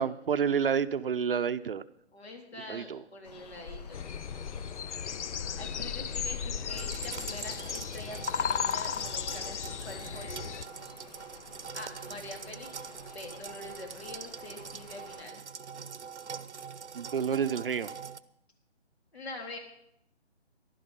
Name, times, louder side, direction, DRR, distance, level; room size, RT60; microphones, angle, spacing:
voice 1, 0.0-1.8 2.7-3.0 16.9-17.9, right 7 dB, 55° right, 13 dB, 0.7 m, -29 dB
voice 2, 2.1-4.1 5.6-10.5 11.7-15.4 19.1-19.6, left 2 dB, 65° left, 3 dB, 3.7 m, -45 dB
sound 1, 3.2-15.2, left 5 dB, 35° left, 0.8 m, -46 dB
sound 2, 3.9-10.7, left 7 dB, 85° left, 0.5 m, -35 dB
sound 3, 6.7-18.2, right 6 dB, 85° right, 0.9 m, -44 dB
15.5 x 11.5 x 5.4 m, 0.76 s
figure-of-eight pair, 150°, 34 cm